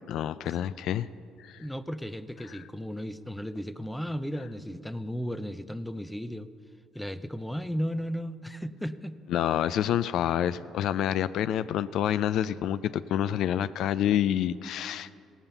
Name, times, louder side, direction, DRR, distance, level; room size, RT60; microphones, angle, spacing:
voice 1, 0.1-1.1 1.4-1.6 2.5-2.6 9.3-15.2, left 10 dB, 70° left, 14 dB, 0.3 m, -28 dB
voice 2, 1.6-6.5 6.9-9.2, equal, 5° left, 11 dB, 0.5 m, -35 dB
17.0 x 7.2 x 6.8 m, 2.4 s
cardioid pair, 100°, 0 cm